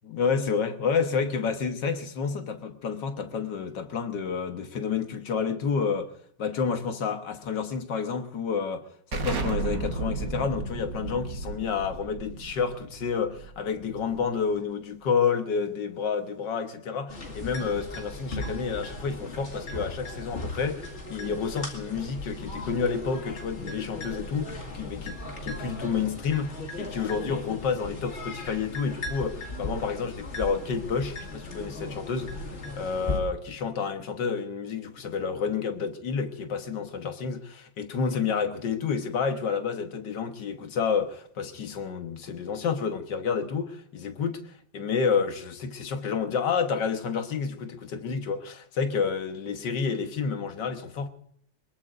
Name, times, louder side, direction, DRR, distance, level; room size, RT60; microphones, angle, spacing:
voice 1, 0.0-6.1 6.4-8.8 9.1-44.4 44.7-51.1, left 6 dB, 65° left, 1.9 m, -29 dB
Explosion, 9.1-14.5, right 4 dB, 60° right, 2.0 m, -34 dB
sound 1, 17.1-33.2, left 2 dB, 35° left, 2.3 m, -37 dB
23.0 x 21.0 x 2.6 m
omnidirectional pair, 2.1 m